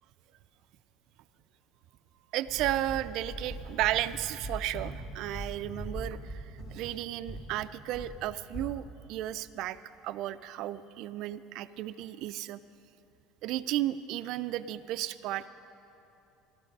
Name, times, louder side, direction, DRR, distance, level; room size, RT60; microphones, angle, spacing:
voice 1, 2.3-8.8 9.1-9.8 10.0-12.6 13.4-15.5, right 13 dB, 60° right, 13 dB, 0.3 m, -33 dB
sound 1, 2.5-9.7, right 1 dB, 45° left, 1.7 m, -42 dB
13.0 x 12.5 x 5.3 m, 2.8 s
cardioid pair, 140°, 0 cm